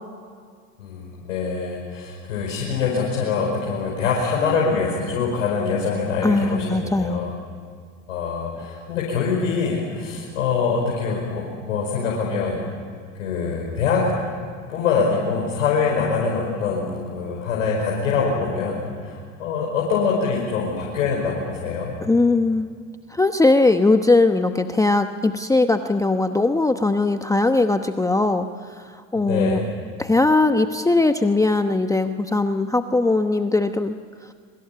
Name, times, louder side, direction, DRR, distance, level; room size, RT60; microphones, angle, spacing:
voice 1, 0.8-7.4 8.1-12.6 13.2-14.0 14.7-22.0 29.1-29.6, left 5 dB, 85° left, -3 dB, 5.3 m, -24 dB
voice 2, 6.2-7.2 22.0-22.7 23.1-28.5 29.1-29.6 30.0-34.0, left 2 dB, 10° left, 7 dB, 1.0 m, -19 dB
25.5 x 24.5 x 8.6 m, 2.1 s
hypercardioid pair, 95°, 39 cm